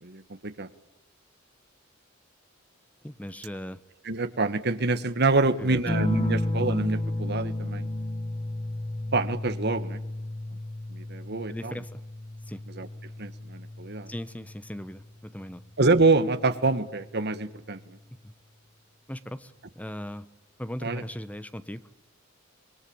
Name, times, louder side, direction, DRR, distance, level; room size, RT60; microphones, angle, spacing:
voice 1, 0.0-0.7 4.0-7.9 9.1-10.0 10.9-11.7 12.8-12.9 13.2-14.1 15.8-18.0 20.8-21.0, right 3 dB, 55° right, 11 dB, 1.6 m, -26 dB
voice 2, 3.0-3.8 5.4-5.8 6.2-6.4 11.5-12.0 12.5-12.6 14.1-15.6 18.2-18.3 19.1-20.3 20.6-22.0, equal, 5° left, 13 dB, 1.1 m, -38 dB
sound 1, 5.9-14.9 16.4-16.9, left 1 dB, 30° left, 2.1 m, -32 dB
26.5 x 22.0 x 8.8 m, 0.93 s
head